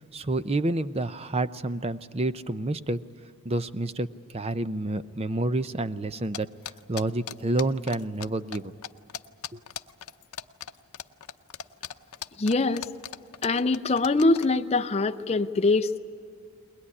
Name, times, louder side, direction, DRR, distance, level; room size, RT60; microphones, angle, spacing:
voice 1, 0.1-3.0 3.4-4.1 4.3-6.5 6.9-8.7 9.5-9.6, right 2 dB, 30° right, 13 dB, 0.6 m, -28 dB
sound 1, 6.3-8.3 8.5-8.6 8.8-14.5, left 9 dB, 85° left, 0.7 m, -37 dB
voice 2, 12.4-12.9 13.4-16.0, left 3 dB, 30° left, 7 dB, 0.6 m, -23 dB
22.0 x 20.0 x 9.8 m, 2.5 s
head